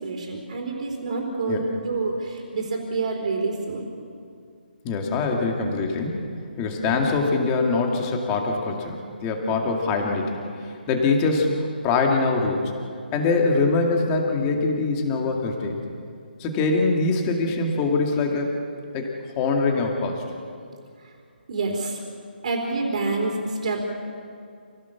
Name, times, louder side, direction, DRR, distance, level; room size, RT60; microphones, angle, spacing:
voice 1, 0.0-3.9 6.6-6.7 21.0-21.1 21.5-22.0 22.4-23.8, right 3 dB, 40° right, 0 dB, 4.0 m, -27 dB
voice 2, 4.8-6.2 6.6-9.0 9.2-10.4 10.9-11.5 11.8-12.6 13.1-15.7 16.4-18.5 18.9-19.1 19.4-20.2, left 3 dB, 15° left, 1 dB, 2.2 m, -23 dB
28.5 x 17.5 x 7.1 m, 2.3 s
hypercardioid pair, 170°, 6 cm